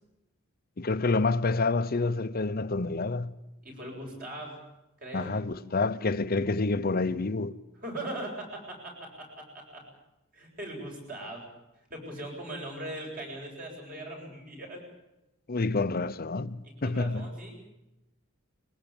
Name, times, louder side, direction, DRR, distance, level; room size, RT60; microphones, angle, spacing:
voice 1, 0.8-3.3 5.1-7.6 15.5-17.3, left 3 dB, 45° left, 0.8 m, -28 dB
voice 2, 3.6-4.7 5.0-5.3 7.8-9.8 10.3-11.4 11.9-14.8 16.6-17.5, right 1 dB, 45° right, 8.0 m, -40 dB
22.0 x 19.5 x 8.9 m
head